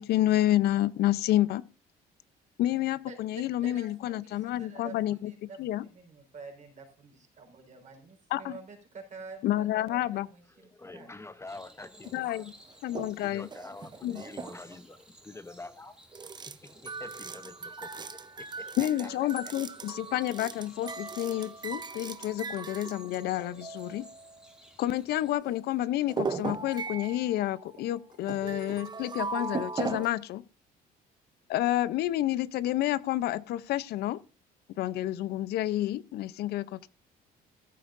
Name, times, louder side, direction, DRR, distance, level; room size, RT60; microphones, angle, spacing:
voice 1, 0.0-1.6 2.6-5.3 5.6-5.8 8.3-8.5 9.4-10.3 12.1-12.5 12.8-13.5 14.0-14.2 18.8-24.1 24.8-30.4 31.5-34.2 34.8-36.9, left 14 dB, 70° left, 0.6 m, -29 dB
voice 2, 3.1-11.1, right 4 dB, 45° right, 4.6 m, -48 dB
voice 3, 10.5-12.5 13.2-16.0 16.6-19.1 19.4-19.5, left 2 dB, 15° left, 0.7 m, -46 dB
sound 1, 11.5-25.3, equal, 5° right, 2.3 m, -58 dB
sound 2, 12.0-12.1 12.7-13.1 13.4-14.9 16.1-24.6 25.0-25.1 25.4-25.6 26.1-30.1, right 4 dB, 25° right, 0.7 m, -38 dB
14.0 x 12.0 x 2.6 m
cardioid pair, 110°, 17 cm